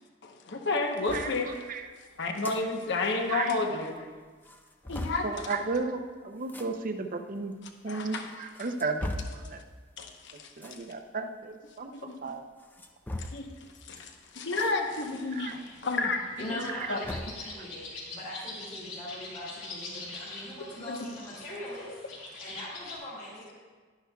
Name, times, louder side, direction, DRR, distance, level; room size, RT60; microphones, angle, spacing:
voice 1, 0.0-1.7 2.2-4.1 4.9-5.5 7.9-8.5 10.0-10.8 11.9-12.3 13.2-16.6 16.9-17.0 20.9-21.0, left 3 dB, 60° left, 3 dB, 0.9 m, -32 dB
sound 1, 1.1-1.3 2.2-2.6 3.0-3.1 3.3-3.4 4.0-4.1 4.4-5.3 6.4-6.7 7.5-7.6 8.3-9.4 10.5-10.8 12.6-13.5 14.6-14.7 15.1-15.2 16.5-17.4, left 1 dB, 10° left, 0.5 m, -38 dB
voice 2, 5.2-7.5 7.8-9.6 10.6-11.9 12.2-12.4 15.3-15.5 17.1-17.2, right 4 dB, 45° right, 6 dB, 0.6 m, -34 dB
sound 2, 14.8-22.9, left 3 dB, 90° left, 2.8 m, -44 dB
voice 3, 16.4-22.0 22.4-23.5, left 1 dB, 40° left, -10 dB, 2.3 m, -41 dB
11.5 x 10.0 x 2.3 m, 1.4 s
head